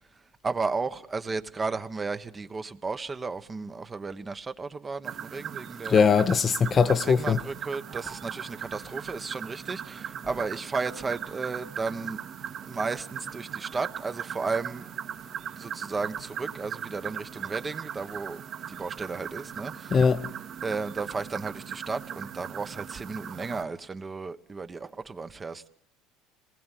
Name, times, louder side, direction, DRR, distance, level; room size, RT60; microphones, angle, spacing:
voice 1, 0.4-6.0 6.9-12.2 12.7-14.9 15.6-18.4 18.7-20.0 20.6-25.7, right 4 dB, 25° right, 1.3 m, -34 dB
sound 1, 5.0-23.6, right 9 dB, 50° right, 2.1 m, -39 dB
voice 2, 5.9-7.4 19.9-20.2, left 6 dB, 35° left, 0.9 m, -21 dB
26.0 x 20.0 x 9.2 m
supercardioid pair, 100°, 0 cm